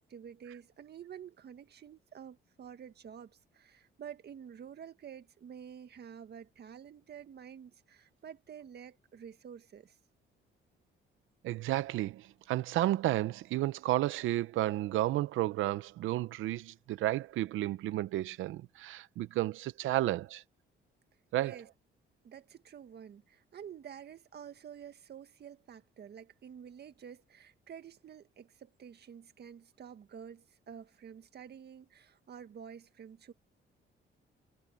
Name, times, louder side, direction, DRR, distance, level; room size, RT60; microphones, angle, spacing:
voice 1, 0.0-9.9 21.4-21.7 22.2-33.3, right 8 dB, 55° right, 1.8 m, -49 dB
voice 2, 11.4-20.4 21.3-21.6, right 15 dB, 85° right, 0.7 m, -32 dB
cardioid pair, 90°, 20 cm